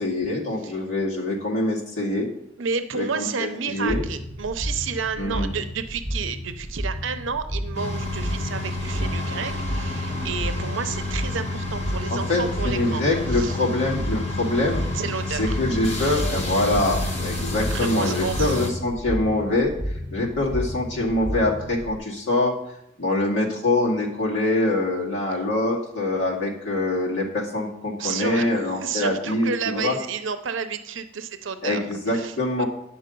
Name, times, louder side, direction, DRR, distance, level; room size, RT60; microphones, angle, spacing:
voice 1, 0.0-2.3 2.9-4.1 5.2-5.5 12.1-14.8 15.3-19.7 20.1-22.6 23.0-30.0 31.6-32.7, left 2 dB, 70° left, -4 dB, 2.2 m, -24 dB
voice 2, 2.6-13.6 14.9-15.6 16.5-16.7 17.7-18.8 25.3-25.5 28.0-28.5 28.8-32.6, right 5 dB, 70° right, 9 dB, 0.6 m, -31 dB
sound 1, 3.9-22.0, equal, 5° left, 3.5 m, -32 dB
sound 2, 7.7-18.7, left 2 dB, 35° left, 1.3 m, -30 dB
9.2 x 6.1 x 5.3 m, 0.81 s
head